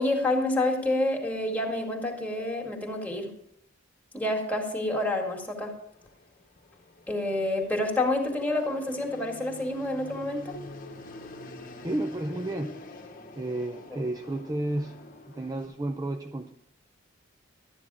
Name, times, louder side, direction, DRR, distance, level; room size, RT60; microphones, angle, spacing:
voice 1, 0.0-3.3 4.1-5.7 7.1-10.6, left 1 dB, 10° left, 0 dB, 2.1 m, -28 dB
Fixed-wing aircraft airplane, 5.4-15.7, left 2 dB, 45° left, 1.1 m, -47 dB
voice 2, 11.8-12.8 13.4-15.0 15.3-16.5, right 1 dB, 20° right, 5 dB, 0.5 m, -32 dB
12.5 x 9.8 x 4.9 m, 0.74 s
head